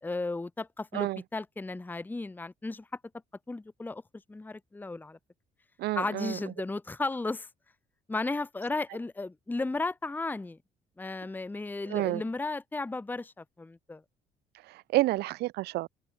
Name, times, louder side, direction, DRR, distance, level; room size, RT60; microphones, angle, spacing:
voice 1, 0.0-2.9 3.5-4.0 4.3-5.2 5.9-7.5 8.1-10.6 11.0-14.0, left 3 dB, 10° left, 0.9 m, -34 dB
voice 2, 5.8-6.4 11.9-12.2 14.6-15.9, right 18 dB, 75° right, 0.5 m, -29 dB
open air
cardioid pair, 110°, 17 cm